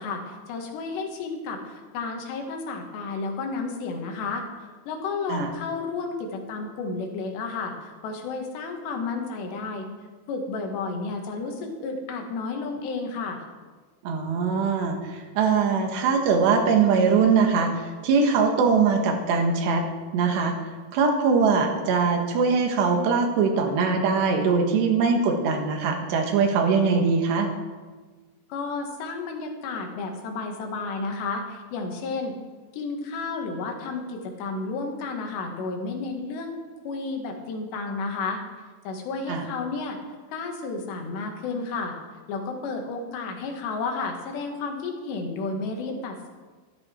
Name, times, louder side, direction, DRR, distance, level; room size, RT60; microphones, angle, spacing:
voice 1, 0.0-9.9 10.3-13.4 28.5-32.4 32.7-36.6 36.9-38.4 38.9-40.0 40.3-42.0 42.3-46.3, left 4 dB, 90° left, 3 dB, 3.8 m, -32 dB
voice 2, 14.0-19.8 20.1-20.6 20.9-27.5 39.3-39.5, right 5 dB, 85° right, 3 dB, 3.7 m, -22 dB
13.5 x 13.0 x 4.4 m, 1.4 s
omnidirectional pair, 4.8 m